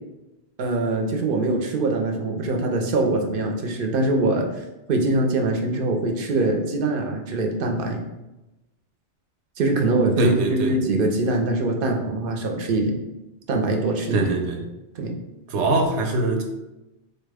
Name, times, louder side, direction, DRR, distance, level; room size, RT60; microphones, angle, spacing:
voice 1, 0.6-4.5 4.9-8.0 9.6-13.0 13.5-14.3 15.0-15.2, right 2 dB, 60° right, 3 dB, 0.7 m, -23 dB
voice 2, 10.2-10.8 14.1-14.6 15.5-16.4, right 2 dB, 85° right, 3 dB, 0.9 m, -22 dB
4.0 x 2.1 x 3.3 m, 0.99 s
omnidirectional pair, 1.1 m